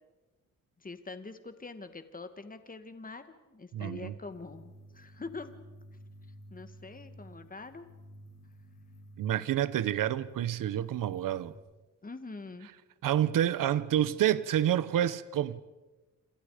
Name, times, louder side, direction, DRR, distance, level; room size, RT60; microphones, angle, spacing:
voice 1, 0.8-5.5 6.5-7.9 12.0-12.7, left 3 dB, 25° left, 2.1 m, -44 dB
voice 2, 3.7-4.1 9.2-11.5 13.0-15.6, right 11 dB, 90° right, 1.0 m, -28 dB
sound 1, 4.3-11.5, equal, 55° left, 6.4 m, -53 dB
28.0 x 27.0 x 5.1 m
cardioid pair, 90°, 32 cm